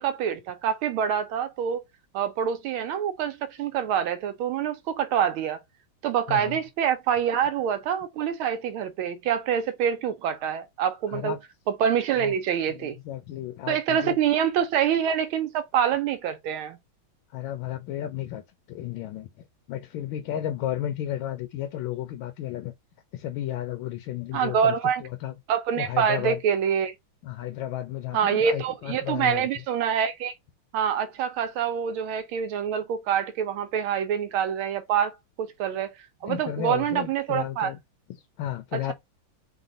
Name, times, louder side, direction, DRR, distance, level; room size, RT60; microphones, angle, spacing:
voice 1, 0.0-1.8 2.1-5.6 6.0-11.3 11.7-13.0 13.7-16.8 24.3-25.0 25.5-26.9 28.1-30.3 30.7-35.1 35.4-35.9 36.2-37.7 38.7-38.9, right 8 dB, 80° right, 1.4 m, -26 dB
voice 2, 6.3-6.6 11.1-11.4 12.2-12.3 12.7-14.2 17.3-18.4 18.7-22.7 23.1-24.7 25.0-25.3 25.7-26.4 27.2-29.6 36.2-37.8 38.1-38.9, left 12 dB, 75° left, 1.3 m, -33 dB
3.9 x 2.2 x 3.8 m
omnidirectional pair, 2.3 m